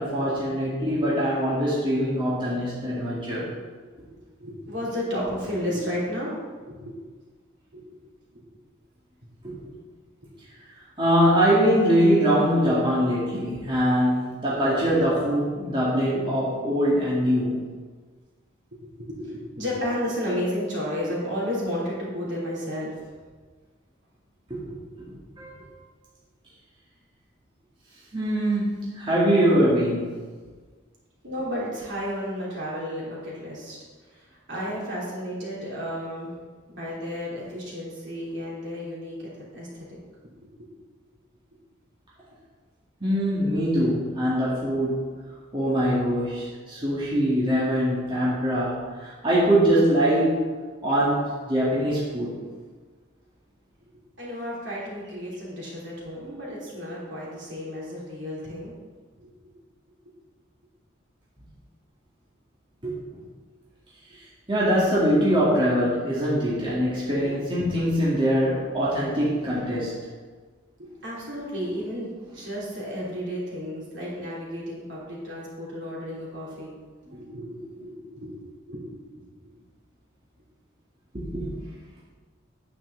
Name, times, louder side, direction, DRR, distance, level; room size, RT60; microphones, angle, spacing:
voice 1, 0.0-3.5 9.4-9.6 11.0-17.6 24.5-25.0 25.4-25.7 28.1-30.2 43.0-45.1 45.5-50.4 50.8-52.4 62.8-63.0 64.5-70.0 81.1-81.5, equal, 25° right, -8 dB, 2.2 m, -23 dB
voice 2, 4.4-6.3 6.7-7.0 7.7-7.8 8.3-8.4 14.7-15.1 15.6-15.7 18.7-23.0 31.2-33.8 34.1-36.3 36.7-40.0 54.2-58.7 59.2-59.3 65.1-65.2 71.0-76.8 77.1-79.2, equal, 65° right, -6 dB, 3.3 m, -33 dB
9.4 x 8.7 x 4.0 m, 1.5 s
head